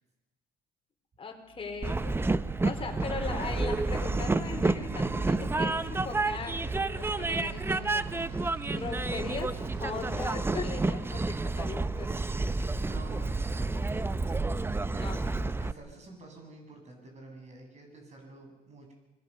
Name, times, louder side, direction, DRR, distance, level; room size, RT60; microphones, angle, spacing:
voice 1, 1.2-2.3 2.6-6.7 7.0-9.5 9.8-12.4 15.0-15.5, left 4 dB, 35° left, 4 dB, 4.4 m, -39 dB
sound 1, 1.5-13.5, right 5 dB, 85° right, 7.7 m, -45 dB
Train, 1.8-15.7, right 3 dB, 15° right, 0.7 m, -30 dB
voice 2, 12.9-18.9, right 2 dB, 40° right, 3 dB, 7.8 m, -50 dB
26.5 x 20.5 x 7.0 m, 1.1 s
cardioid pair, 110°, 17 cm